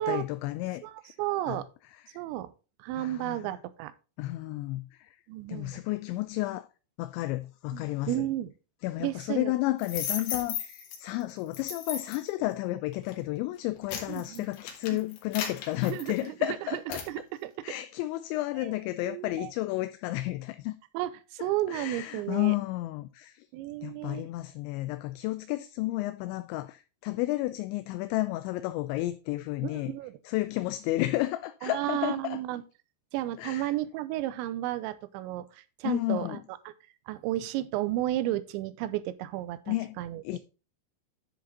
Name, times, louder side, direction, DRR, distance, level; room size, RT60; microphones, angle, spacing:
voice 1, 0.0-1.1 1.5-1.6 2.1-2.2 3.0-3.6 4.2-5.2 5.5-6.7 7.0-8.3 8.8-17.0 17.6-20.7 21.4-23.5 23.8-29.9 30.2-32.4 33.4-33.7 35.8-36.4 39.7-40.0 40.2-40.4, left 17 dB, 85° left, 2.7 m, -32 dB
voice 2, 1.2-1.7 2.2-2.5 2.8-3.9 5.3-5.8 7.7-8.5 9.0-9.5 14.1-14.5 14.9-15.0 15.8-16.3 16.7-16.8 17.1-17.5 18.6-18.7 19.1-19.5 20.9-22.5 23.5-24.3 29.6-30.1 31.6-32.6 33.1-36.4 37.1-40.2, right 14 dB, 80° right, 2.8 m, -33 dB
sound 1, 9.8-11.0 11.5-12.3 12.9-13.1 13.6-16.4 16.9-17.1, left 8 dB, 65° left, 3.3 m, -35 dB
10.5 x 5.1 x 3.8 m
omnidirectional pair, 5.4 m